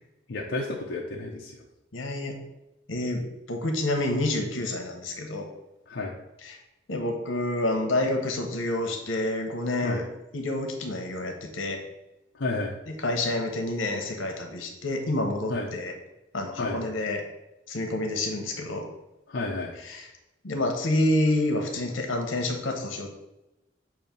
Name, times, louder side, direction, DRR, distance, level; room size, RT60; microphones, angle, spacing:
voice 1, 0.3-1.5 5.9-6.1 9.8-10.0 12.4-12.8 15.5-15.7 16.6-16.8 19.3-19.7, left 2 dB, 65° left, -2 dB, 0.7 m, -31 dB
voice 2, 1.9-2.4 2.9-5.5 6.4-6.6 6.9-10.0 10.3-11.8 12.9-15.9 16.3-17.2 17.7-18.8 19.8-20.1 20.4-23.1, left 1 dB, 85° left, 3 dB, 1.1 m, -28 dB
7.0 x 2.7 x 5.2 m, 0.95 s
head